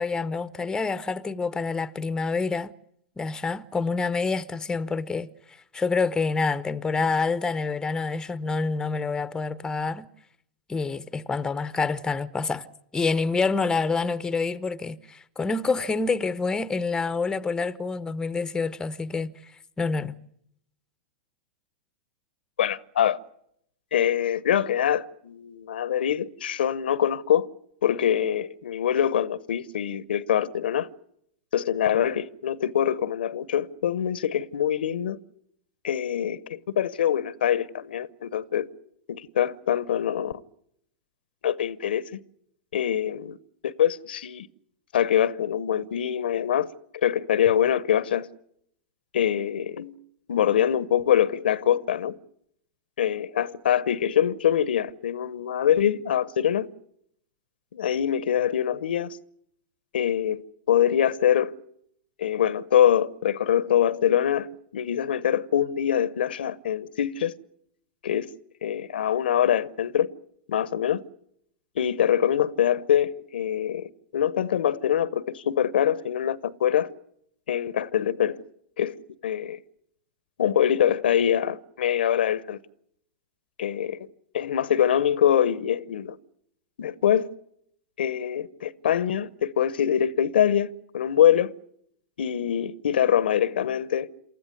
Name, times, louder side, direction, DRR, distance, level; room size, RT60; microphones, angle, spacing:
voice 1, 0.0-2.7 3.2-10.1 10.7-12.7 12.9-19.5 19.8-20.1, left 4 dB, 10° left, 0.8 m, -27 dB
voice 2, 22.6-23.2 23.9-27.5 27.8-30.9 31.5-35.2 35.8-38.7 39.1-40.3 41.4-42.0 42.7-43.4 43.6-44.5 44.9-46.7 47.0-48.3 49.1-49.9 50.3-52.2 53.0-56.7 57.7-59.2 59.9-60.4 60.7-61.5 62.2-64.5 64.7-67.3 68.0-68.3 68.6-70.1 70.5-71.0 71.8-76.9 77.5-78.4 78.8-79.0 79.2-79.6 80.4-82.6 83.6-84.0 84.3-86.2 86.8-87.3 88.0-91.5 92.2-94.1, left 9 dB, 70° left, 0.9 m, -24 dB
28.0 x 14.5 x 9.6 m
hypercardioid pair, 100°, 5 cm